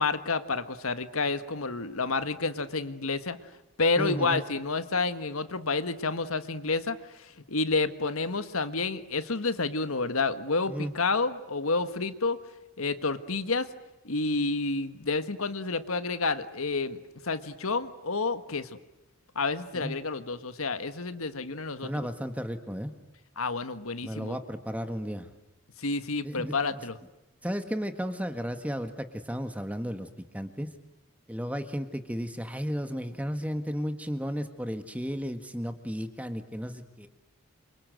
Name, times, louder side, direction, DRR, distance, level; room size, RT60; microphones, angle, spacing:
voice 1, 0.0-3.4 3.8-12.4 12.8-13.7 14.0-18.7 19.3-21.9 23.4-24.4 25.8-27.0, left 3 dB, 75° left, 11 dB, 1.6 m, -29 dB
voice 2, 4.0-4.4 10.7-10.9 19.7-20.0 21.8-22.9 24.0-25.3 26.2-26.8 27.4-30.1 30.3-30.7 31.3-37.1, equal, 5° right, 8 dB, 1.7 m, -34 dB
28.0 x 25.5 x 8.0 m, 0.98 s
head